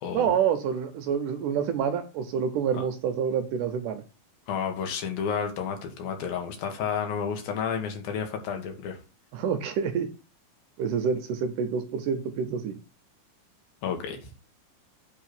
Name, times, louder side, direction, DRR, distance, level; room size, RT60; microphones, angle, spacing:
voice 1, 0.1-4.0 9.3-10.1 10.8-12.8, right 7 dB, 75° right, 8 dB, 2.1 m, -27 dB
voice 2, 4.5-9.0 13.8-14.3, left 7 dB, 80° left, 4 dB, 3.2 m, -31 dB
8.4 x 3.6 x 5.9 m, 0.33 s
omnidirectional pair, 4.2 m